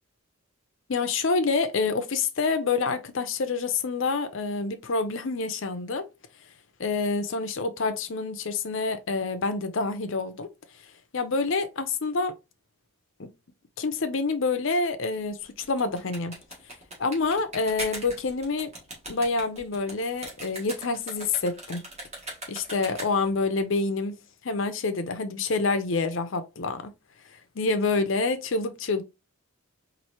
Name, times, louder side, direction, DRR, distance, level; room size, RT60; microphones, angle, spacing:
voice 1, 0.9-6.1 6.8-10.5 11.1-12.3 13.2-13.3 13.8-15.4 15.7-16.3 17.0-18.7 19.1-21.8 22.5-24.1 24.4-26.9 27.5-29.0, left 3 dB, 60° left, 0.6 m, -27 dB
sound 1, 15.5-23.4, right 1 dB, 30° right, 1.6 m, -40 dB
4.2 x 2.7 x 3.0 m
head